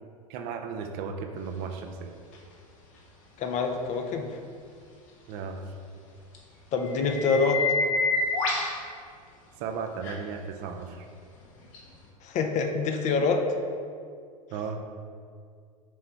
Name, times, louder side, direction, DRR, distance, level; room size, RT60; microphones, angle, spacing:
voice 1, 0.3-2.1 5.3-5.7 9.6-11.1 14.5-14.8, right 5 dB, 50° right, 5 dB, 0.6 m, -35 dB
sound 1, 2.3-2.4 6.3-6.4 6.8-8.7 10.0-10.2 11.7-11.8, left 3 dB, 60° left, 1.2 m, -27 dB
voice 2, 3.4-4.3 6.7-7.6 12.2-13.4, left 4 dB, 40° left, 5 dB, 0.7 m, -26 dB
6.2 x 3.4 x 4.5 m, 2.2 s
hypercardioid pair, 90°, 19 cm